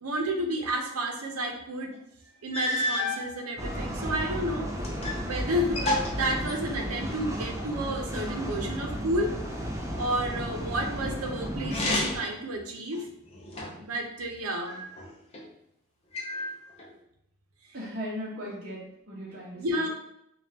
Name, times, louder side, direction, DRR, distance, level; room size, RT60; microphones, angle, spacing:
voice 1, 0.0-1.9 2.4-4.7 5.2-9.4 10.0-13.1 13.8-14.8 19.6-19.9, right 1 dB, 85° right, 2 dB, 0.8 m, -31 dB
sound 1, 1.9-2.0 2.5-3.3 4.0-5.3 5.5-7.1 11.6-12.4 12.9-13.9 14.6-15.4 16.1-16.9, left 1 dB, 30° left, 0.6 m, -31 dB
sound 2, 3.6-12.2, equal, 15° right, 0.5 m, -34 dB
voice 2, 17.7-19.9, equal, 45° right, -8 dB, 0.9 m, -38 dB
5.3 x 2.4 x 2.8 m, 0.76 s
head